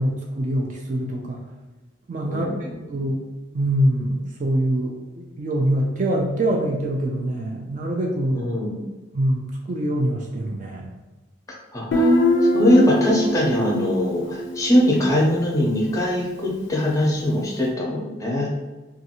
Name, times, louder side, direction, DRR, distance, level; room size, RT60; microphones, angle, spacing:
voice 1, 0.0-1.4 2.1-2.5 2.9-3.2 3.5-8.5 9.1-10.9, right 1 dB, 40° right, 0 dB, 0.3 m, -24 dB
voice 2, 2.3-2.6 8.3-8.9 11.5-18.5, left 1 dB, 15° left, -3 dB, 0.5 m, -21 dB
Guitar, 11.9-15.5, equal, 70° left, 0.4 m, -23 dB
2.5 x 2.3 x 2.8 m, 1.2 s
head